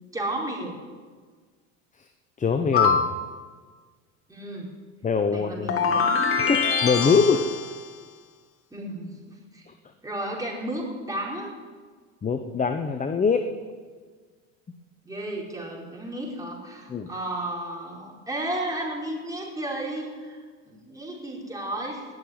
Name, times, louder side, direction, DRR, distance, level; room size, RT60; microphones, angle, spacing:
voice 1, 0.1-0.8 4.3-4.7 5.3-6.1 8.7-9.7 10.0-11.5 15.0-22.1, right 1 dB, 10° right, -3 dB, 4.6 m, -33 dB
voice 2, 2.4-3.1 5.0-5.7 6.4-7.5 9.7-9.8 12.2-13.5 16.9-17.1, left 5 dB, 20° left, 7 dB, 1.0 m, -23 dB
sound 1, 2.7-3.2 5.7-7.8, left 5 dB, 35° left, 1.9 m, -23 dB
19.0 x 7.0 x 9.5 m, 1.5 s
supercardioid pair, 95°, 37 cm